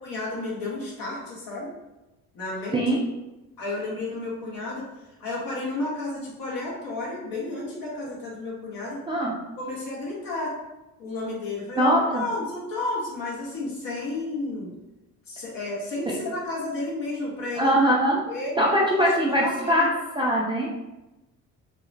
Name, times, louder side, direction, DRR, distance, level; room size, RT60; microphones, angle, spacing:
voice 1, 0.0-1.7 2.3-2.8 3.6-9.0 9.6-10.5 11.0-11.9 12.1-14.7 15.3-17.7 18.3-18.6 18.9-19.9, left 2 dB, 55° left, -5 dB, 1.3 m, -32 dB
voice 2, 11.8-12.2 16.1-16.2 17.5-18.2 18.6-19.9 20.2-20.7, equal, 10° right, -4 dB, 0.4 m, -21 dB
2.8 x 2.0 x 2.7 m, 1.0 s
hypercardioid pair, 65°, 42 cm